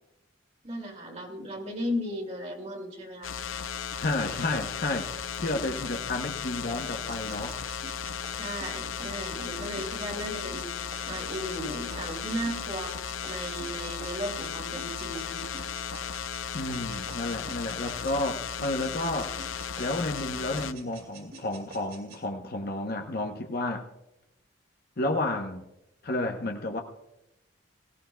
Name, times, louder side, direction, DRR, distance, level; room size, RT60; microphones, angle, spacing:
voice 1, 0.6-3.3 8.4-13.0 13.2-15.7, equal, 35° right, 2 dB, 2.2 m, -36 dB
sound 1, 3.2-20.7, left 7 dB, 85° left, 0.6 m, -36 dB
voice 2, 3.9-7.6 16.5-19.4 19.8-23.8 25.0-25.7 26.0-26.8, left 2 dB, 50° left, 3 dB, 0.9 m, -31 dB
sound 2, 7.1-16.4 16.7-18.4 18.6-20.3 20.5-22.2, right 3 dB, 50° right, 2.5 m, -48 dB
18.5 x 17.0 x 2.3 m, 0.88 s
head